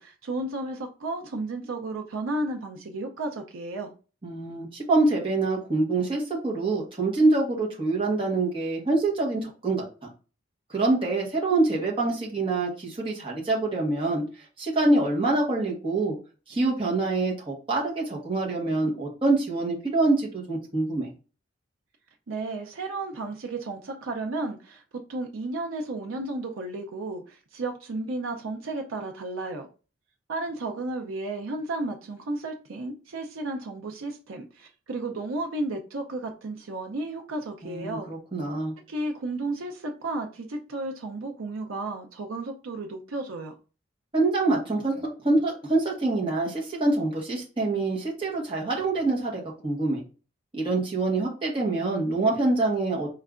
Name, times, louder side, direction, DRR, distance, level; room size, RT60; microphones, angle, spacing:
voice 1, 0.0-3.9 22.3-24.8 25.1-29.7 30.3-38.1 38.9-43.5, right 2 dB, 80° right, 0.5 m, -33 dB
voice 2, 4.2-9.8 10.7-14.2 14.6-16.2 16.5-21.1 37.6-38.7 44.1-50.0 50.5-53.1, right 2 dB, 25° right, 1.1 m, -25 dB
4.5 x 3.2 x 2.4 m
head